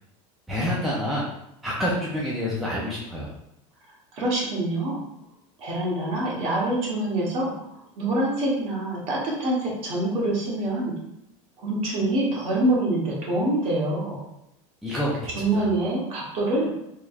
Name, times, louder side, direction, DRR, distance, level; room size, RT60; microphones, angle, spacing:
voice 1, 0.5-1.2 1.6-3.3 14.8-15.2 15.5-15.7, left 1 dB, ahead, -7 dB, 0.3 m, -27 dB
voice 2, 4.1-5.0 5.6-10.9 11.6-14.2 15.3-16.7, right 1 dB, 35° right, -3 dB, 1.0 m, -25 dB
3.3 x 3.0 x 2.3 m, 0.82 s
supercardioid pair, 165°, 16 cm